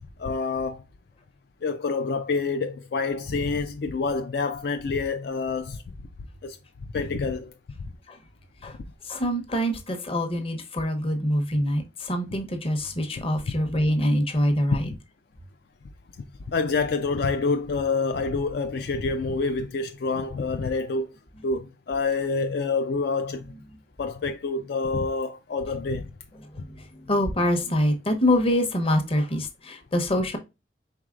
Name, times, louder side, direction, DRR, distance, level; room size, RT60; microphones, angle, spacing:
voice 1, 0.2-0.8 1.6-5.8 6.4-6.6 6.9-7.5 14.7-15.0 16.5-21.1 21.4-23.4 24.0-26.1, left 4 dB, 65° left, 0.4 m, -27 dB
voice 2, 9.0-14.9 26.5-30.4, left 1 dB, 35° left, 0.9 m, -25 dB
4.6 x 3.7 x 2.4 m
head